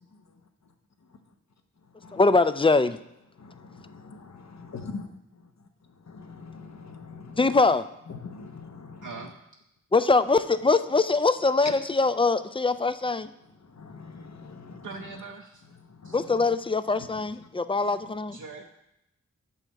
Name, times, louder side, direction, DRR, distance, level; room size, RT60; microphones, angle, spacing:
voice 1, 2.1-3.0 7.4-7.8 9.9-13.3 16.1-18.4, left 3 dB, 15° left, 13 dB, 0.3 m, -23 dB
voice 2, 3.4-5.1 5.3-5.5 5.9-7.6 8.1-9.2 13.6-15.0 15.8-16.5 16.9-17.5, left 4 dB, 55° left, 6 dB, 0.9 m, -43 dB
voice 3, 9.0-9.3 14.8-15.6 16.0-16.2 18.3-18.6, right 4 dB, 65° right, 0 dB, 0.7 m, -41 dB
7.2 x 5.7 x 4.0 m, 0.84 s
cardioid pair, 40°, 33 cm